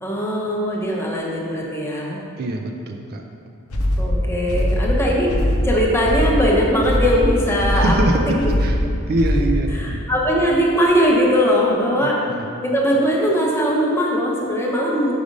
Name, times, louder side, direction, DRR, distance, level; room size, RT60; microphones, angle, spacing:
voice 1, 0.0-2.2 4.0-5.3 5.6-8.1 8.4-8.5 9.7-12.2 12.6-15.1, equal, 10° left, -3 dB, 0.7 m, -20 dB
voice 2, 2.4-3.2 7.7-8.8 9.1-10.0 12.0-12.4, right 1 dB, 45° right, 3 dB, 0.4 m, -24 dB
sound 1, 3.7-9.8, left 1 dB, 75° left, 0.7 m, -21 dB
5.0 x 4.9 x 5.2 m, 2.5 s
head